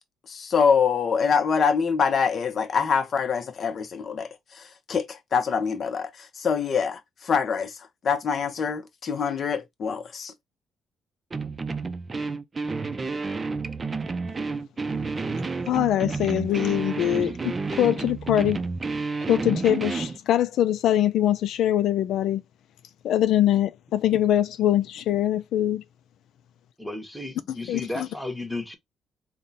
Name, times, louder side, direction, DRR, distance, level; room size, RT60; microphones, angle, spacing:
voice 1, 0.3-4.3 4.5-7.8 8.0-10.3, left 6 dB, 50° left, 0.8 m, -25 dB
sound 1, 11.3-20.2, right 4 dB, 30° right, 0.5 m, -30 dB
voice 2, 15.7-18.6 19.3-22.4 23.0-25.8 27.7-28.1, left 12 dB, 80° left, 0.3 m, -23 dB
voice 3, 26.8-28.8, left 2 dB, ahead, 1.0 m, -34 dB
3.6 x 2.2 x 4.0 m
cardioid pair, 90°, 0 cm